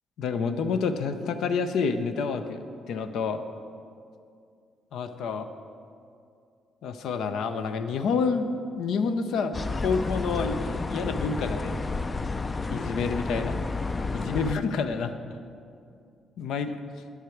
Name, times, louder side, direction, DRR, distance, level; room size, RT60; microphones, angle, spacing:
voice 1, 0.2-2.6 2.9-3.4 4.9-5.5 6.8-8.5 8.8-11.8 12.7-13.6 14.1-15.4 16.4-16.7, left 5 dB, 80° left, 9 dB, 0.6 m, -28 dB
sound 1, 9.5-14.6, left 3 dB, 30° left, 0.4 m, -31 dB
9.3 x 8.1 x 4.6 m, 2.4 s
cardioid pair, 90°, 0 cm